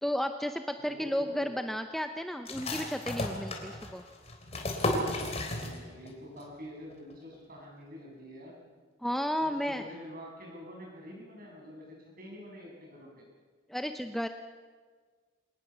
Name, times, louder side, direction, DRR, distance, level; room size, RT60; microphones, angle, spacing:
voice 1, 0.0-4.0 9.0-9.9 13.7-14.3, equal, ahead, 7 dB, 0.6 m, -33 dB
voice 2, 0.8-1.5 5.5-8.6 9.4-13.2, equal, 45° right, -1 dB, 7.7 m, -47 dB
sound 1, 2.5-6.1 6.4-6.5 6.9-7.4, left 1 dB, 35° left, 3.6 m, -34 dB
25.0 x 19.5 x 7.3 m, 1.5 s
head